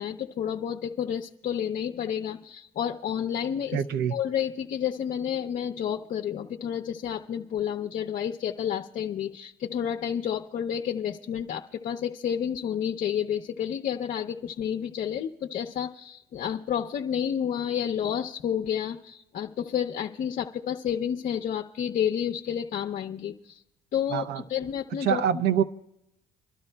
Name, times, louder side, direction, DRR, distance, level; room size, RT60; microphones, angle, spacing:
voice 1, 0.0-3.8 4.1-23.6 23.9-25.4, left 9 dB, 50° left, 3 dB, 0.6 m, -30 dB
voice 2, 3.7-4.1 24.1-24.4 25.0-25.6, right 9 dB, 70° right, 13 dB, 0.6 m, -25 dB
29.0 x 12.5 x 2.2 m, 0.86 s
cardioid pair, 110°, 17 cm